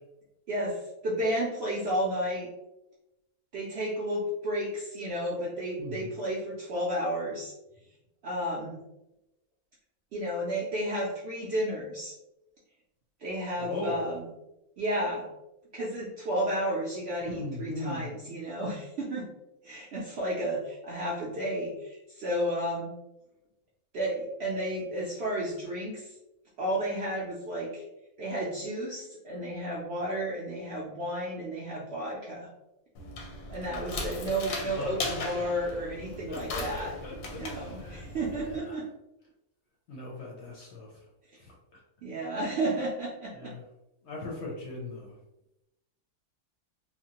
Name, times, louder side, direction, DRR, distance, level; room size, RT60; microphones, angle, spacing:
voice 1, 0.5-2.5 3.5-7.5 8.2-8.8 10.1-12.1 13.2-14.2 14.8-15.3 15.7-19.3 19.6-22.9 23.9-26.1 26.6-27.8 28.2-32.5 33.5-36.9 37.3-38.8 42.0-43.5, right 1 dB, 65° right, -4 dB, 0.6 m, -32 dB
voice 2, 5.8-6.1 13.6-14.1 17.2-18.1 34.6-35.5 36.3-37.4 37.8-38.8 39.9-41.0 41.4-41.8 43.3-43.6 44.0-45.2, left 2 dB, 65° left, -3 dB, 0.7 m, -39 dB
sound 1, 32.9-38.6, left 2 dB, 85° left, 1.1 m, -38 dB
3.0 x 2.1 x 2.8 m, 0.93 s
omnidirectional pair, 1.6 m